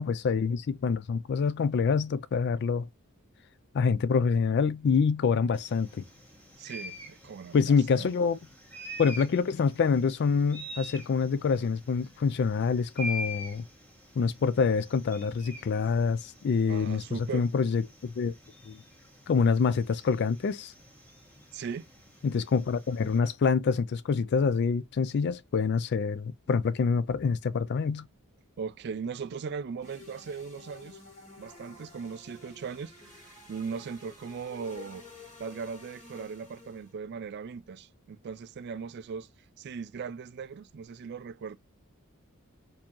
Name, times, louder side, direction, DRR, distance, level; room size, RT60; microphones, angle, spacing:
voice 1, 0.0-2.9 3.7-6.0 7.5-8.4 9.0-13.6 14.2-17.0 17.3-18.3 18.7-18.8 19.3-20.7 22.2-28.1, left 5 dB, 50° left, 0.3 m, -26 dB
sound 1, 5.5-23.2, left 1 dB, 10° left, 1.4 m, -45 dB
voice 2, 6.6-8.1 16.7-17.5 21.5-21.9 28.6-31.0 31.4-35.1 35.4-39.3 39.6-41.6, right 6 dB, 50° right, 0.3 m, -39 dB
sound 2, 29.8-36.9, left 3 dB, 35° left, 1.8 m, -51 dB
4.4 x 2.7 x 2.9 m
head